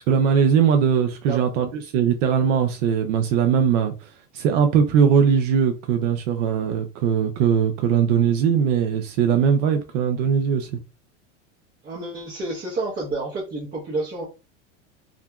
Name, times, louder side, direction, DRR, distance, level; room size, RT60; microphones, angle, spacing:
voice 1, 0.1-10.8, right 7 dB, 75° right, 0.6 m, -20 dB
voice 2, 11.8-14.2, right 2 dB, 25° right, 1.0 m, -29 dB
2.8 x 2.5 x 2.2 m
supercardioid pair, 125°, 36 cm